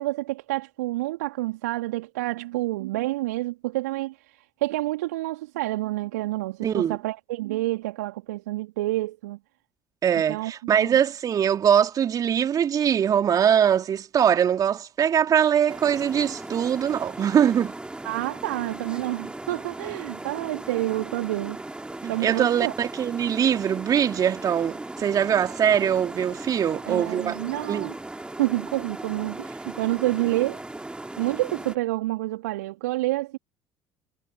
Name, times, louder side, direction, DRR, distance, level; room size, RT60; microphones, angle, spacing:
voice 1, 0.0-4.2 4.6-9.4 10.3-11.0 18.0-21.6 22.1-22.7 26.8-27.9 28.4-30.6 31.2-33.4, right 18 dB, 70° right, 2.6 m, -28 dB
voice 2, 6.6-7.0 10.0-17.7 22.0-27.4 27.7-27.9, right 9 dB, 40° right, 2.7 m, -22 dB
sound 1, 15.7-31.8, right 2 dB, 10° right, 2.6 m, -38 dB
figure-of-eight pair, 60°, 9 cm